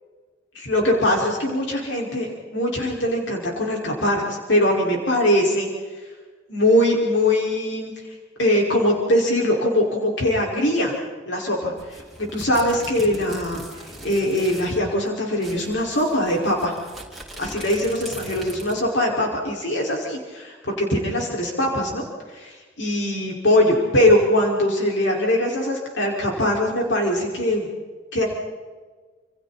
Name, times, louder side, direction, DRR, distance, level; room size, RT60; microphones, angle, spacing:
voice 1, 0.5-5.7 6.5-7.9 8.4-11.0 11.3-12.0 12.3-13.6 14.0-16.7 17.4-22.0 22.3-27.7 28.1-28.3, left 1 dB, 75° left, -1 dB, 5.1 m, -21 dB
sound 1, 11.8-14.8 15.1-15.2 15.4-18.9, right 1 dB, ahead, 5.2 m, -40 dB
29.5 x 28.0 x 4.3 m, 1.4 s
head